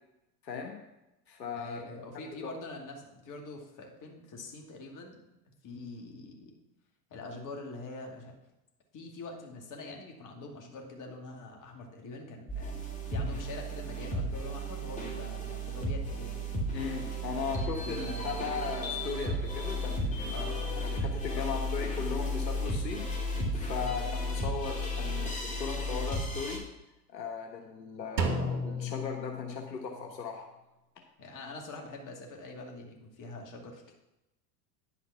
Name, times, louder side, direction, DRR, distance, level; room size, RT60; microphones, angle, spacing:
voice 1, 0.4-0.8 1.3-1.8 2.4-2.5 16.7-20.4 20.8-23.0 23.5-26.6 27.1-30.5, left 5 dB, 90° left, 3 dB, 1.4 m, -37 dB
voice 2, 1.5-5.3 5.6-6.5 7.1-8.4 8.9-16.5 17.6-18.4 20.3-20.9 21.3-21.5 23.8-24.0 31.2-34.0, left 2 dB, 40° left, 1 dB, 2.6 m, -44 dB
sound 1, 12.5-26.6, equal, 15° left, 2.9 m, -34 dB
Drum, 28.2-30.1, equal, 80° right, 1.6 m, -33 dB
10.5 x 5.7 x 5.8 m, 0.93 s
hypercardioid pair, 95°, 49 cm